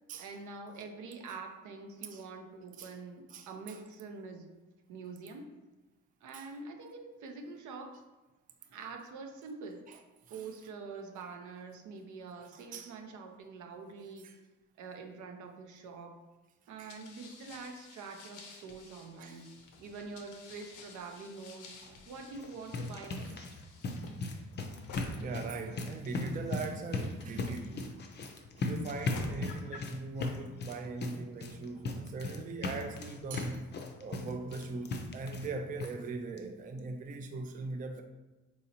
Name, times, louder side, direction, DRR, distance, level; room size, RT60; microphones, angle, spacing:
voice 1, 0.2-4.5 4.9-5.5 6.2-8.0 8.7-9.9 10.3-14.3 14.8-16.1 16.7-19.5 19.8-21.7 22.1-23.5, right 4 dB, 75° right, 0.6 m, -45 dB
voice 2, 3.3-3.8 6.3-6.5 9.9-10.0 10.3-10.5 12.5-13.0 14.2-14.3 16.8-16.9 19.2-19.4 21.8-22.0 24.0-24.3 25.2-27.9 28.6-33.7 34.0-38.0, right 3 dB, 30° right, 0.3 m, -41 dB
sound 1, 16.9-28.2 28.8-29.9, left 3 dB, 90° left, 0.6 m, -51 dB
sound 2, 22.3-35.5 35.8-35.9 36.4-36.5 36.8-36.9, left 2 dB, 35° left, 0.5 m, -38 dB
4.2 x 2.7 x 2.8 m
cardioid pair, 90°, 30 cm